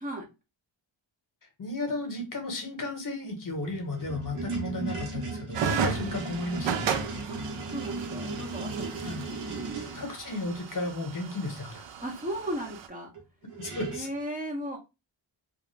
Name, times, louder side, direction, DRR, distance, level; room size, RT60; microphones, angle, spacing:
voice 1, 1.6-6.9 9.0-9.2 9.9-11.9 13.6-14.1, left 2 dB, 40° left, 3 dB, 1.0 m, -34 dB
sound 1, 3.5-10.0 13.1-13.2 13.5-14.1, right 3 dB, 85° right, 0.9 m, -36 dB
sound 2, 5.5-12.9, right 6 dB, 65° right, 0.5 m, -35 dB
voice 2, 7.7-9.0 9.4-9.8 12.0-13.1 13.9-14.8, right 1 dB, 15° right, -2 dB, 0.6 m, -36 dB
2.4 x 2.0 x 3.1 m, 0.26 s
wide cardioid pair, 90°, 49 cm